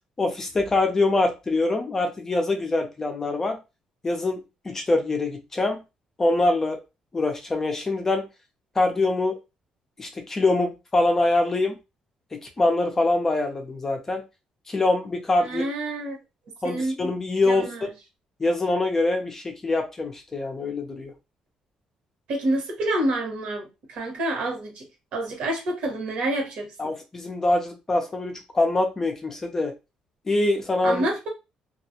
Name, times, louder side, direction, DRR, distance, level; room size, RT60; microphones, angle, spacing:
voice 1, 0.2-3.6 4.0-5.8 6.2-6.8 7.1-8.2 8.8-9.3 10.0-11.8 12.3-14.2 14.7-15.6 16.6-17.7 18.4-21.1 26.8-29.7 30.3-31.1, left 2 dB, 20° left, 3 dB, 0.4 m, -24 dB
voice 2, 15.4-16.2 16.6-17.0 17.5-17.8 22.3-26.9 30.8-31.3, right 1 dB, 70° right, 1 dB, 1.1 m, -28 dB
2.3 x 2.1 x 2.8 m, 0.26 s
cardioid pair, 155°, 2 cm